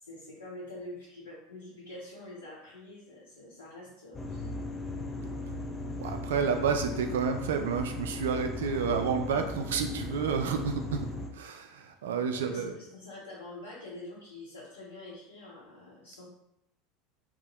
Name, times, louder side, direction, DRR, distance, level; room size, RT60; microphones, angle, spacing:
voice 1, 0.0-4.5 12.3-16.3, left 2 dB, 75° left, -8 dB, 0.7 m, -46 dB
sound 1, 4.1-11.3, left 2 dB, 20° left, 0.4 m, -37 dB
voice 2, 6.0-11.1 11.3-12.8, right 6 dB, 65° right, 6 dB, 0.3 m, -30 dB
2.7 x 2.1 x 3.0 m, 0.80 s
figure-of-eight pair, 75°, 0 cm